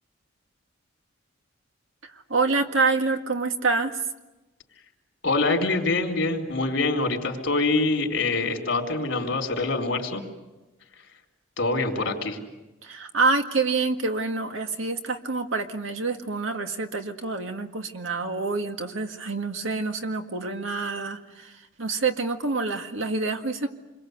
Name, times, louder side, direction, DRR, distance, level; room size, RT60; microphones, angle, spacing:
voice 1, 2.0-4.0 12.8-23.7, right 3 dB, 85° right, 5 dB, 2.0 m, -27 dB
voice 2, 5.2-10.2 11.6-12.4, left 3 dB, 65° left, 3 dB, 4.2 m, -25 dB
28.0 x 22.5 x 8.2 m, 1.1 s
head